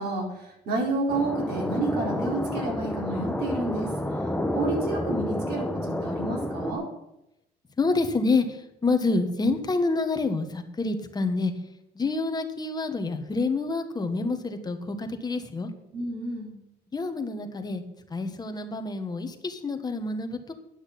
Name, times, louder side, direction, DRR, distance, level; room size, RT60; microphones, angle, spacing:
voice 1, 0.0-3.9 4.5-6.9 15.9-16.5, right 2 dB, 70° right, -1 dB, 4.4 m, -30 dB
sound 1, 1.1-6.7, left 1 dB, 5° left, 1.1 m, -30 dB
voice 2, 7.8-11.5 11.9-15.7 16.9-17.8 18.1-20.5, left 3 dB, 25° left, 7 dB, 1.5 m, -27 dB
10.5 x 6.3 x 8.4 m, 0.85 s
cardioid pair, 110°, 17 cm